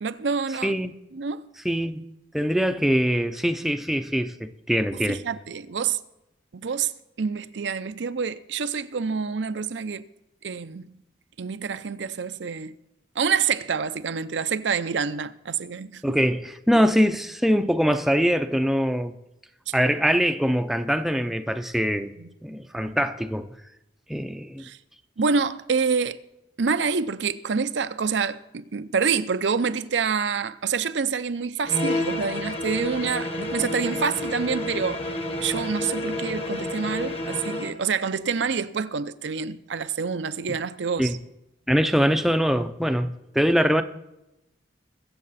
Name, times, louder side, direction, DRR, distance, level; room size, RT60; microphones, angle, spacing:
voice 1, 0.0-0.7 1.1-1.5 5.1-6.0 6.5-6.9 7.2-10.0 10.4-11.0 11.4-12.7 13.2-16.2 19.7-19.8 22.2-22.3 24.6-24.8 25.2-26.2 26.6-35.0 35.4-41.2, right 5 dB, 75° right, 0.6 m, -27 dB
voice 2, 0.6-0.9 1.6-2.0 2.3-5.2 16.0-19.1 19.7-22.1 22.4-23.5 24.1-24.7 41.0-41.2 41.7-43.8, equal, ahead, 0.5 m, -23 dB
sound 1, 31.6-37.8, left 2 dB, 35° left, 1.3 m, -30 dB
22.5 x 7.7 x 4.1 m
head